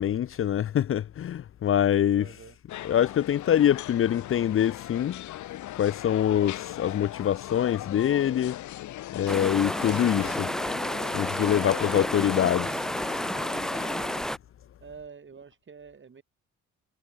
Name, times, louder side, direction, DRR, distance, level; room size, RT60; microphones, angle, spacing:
voice 1, 0.0-2.3 2.8-5.2 5.7-8.6 9.1-10.5 11.1-12.8, left 10 dB, 45° left, 0.6 m, -25 dB
voice 2, 2.1-2.6 14.8-16.2, right 6 dB, 40° right, 6.2 m, -47 dB
sound 1, 2.7-14.2, left 14 dB, 70° left, 0.9 m, -39 dB
sound 2, 9.3-14.4, equal, ahead, 0.9 m, -31 dB
cardioid pair, 90°, 30 cm